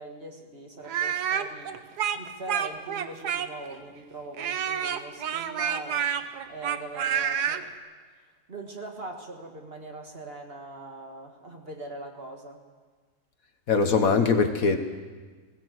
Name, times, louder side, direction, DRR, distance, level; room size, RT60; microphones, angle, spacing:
voice 1, 0.0-7.7 8.5-12.6, right 2 dB, 35° right, 2 dB, 1.9 m, -41 dB
Speech, 0.9-3.8 4.4-7.6, right 8 dB, 70° right, 1.4 m, -28 dB
voice 2, 13.7-14.8, left 4 dB, 55° left, 7 dB, 1.5 m, -21 dB
20.5 x 16.5 x 7.8 m, 1.5 s
omnidirectional pair, 1.8 m